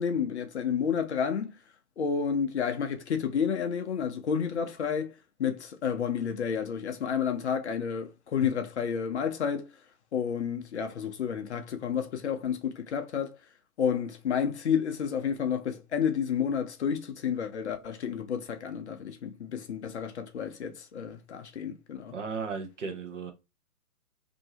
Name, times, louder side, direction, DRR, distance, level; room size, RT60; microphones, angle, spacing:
voice 1, 0.0-1.5 2.0-5.1 5.4-9.7 10.1-13.4 13.8-22.1, left 7 dB, 50° left, 0.6 m, -30 dB
voice 2, 22.1-23.3, right 5 dB, 55° right, 0.9 m, -35 dB
2.8 x 2.6 x 2.7 m
figure-of-eight pair, 130°, 45 cm